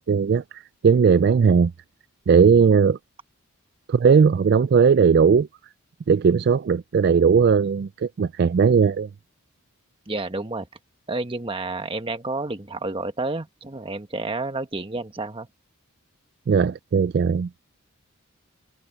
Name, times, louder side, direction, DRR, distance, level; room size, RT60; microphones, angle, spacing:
voice 1, 0.0-1.7 2.3-3.0 3.9-5.5 6.1-9.1 16.5-17.5, right 6 dB, 45° right, 0.3 m, -18 dB
voice 2, 10.1-10.7 11.1-15.5, right 2 dB, 25° right, 1.2 m, -30 dB
head